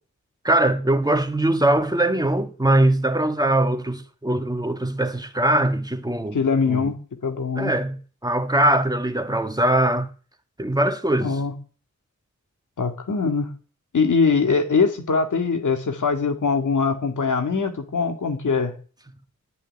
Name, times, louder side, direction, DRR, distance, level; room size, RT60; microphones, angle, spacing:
voice 1, 0.4-6.4 6.7-6.9 7.6-10.1 10.6-11.4, right 1 dB, 15° right, 1.8 m, -21 dB
voice 2, 6.3-7.0 7.2-7.7 11.2-11.5 12.8-13.5 13.9-18.7, left 5 dB, 80° left, 2.3 m, -22 dB
10.5 x 9.5 x 10.0 m
wide cardioid pair, 75°, 30 cm